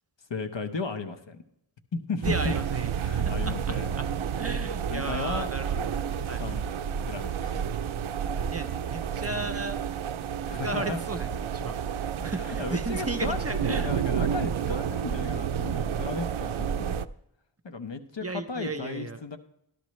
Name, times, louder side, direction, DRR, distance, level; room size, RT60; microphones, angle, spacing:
voice 1, 0.3-1.4 1.9-2.5 3.0-4.0 4.9-5.5 6.3-6.7 7.1-7.7 10.4-11.0 12.2-17.0 17.6-19.4, left 4 dB, 60° left, 8 dB, 1.0 m, -35 dB
voice 2, 2.2-2.9 3.3-4.1 4.4-6.4 8.3-9.8 10.6-14.0 18.2-19.2, right 3 dB, 30° right, 9 dB, 0.6 m, -35 dB
sound 1, 2.2-17.1, right 8 dB, 75° right, 0.5 m, -30 dB
13.0 x 12.0 x 3.2 m, 0.77 s
wide cardioid pair, 70°, 50 cm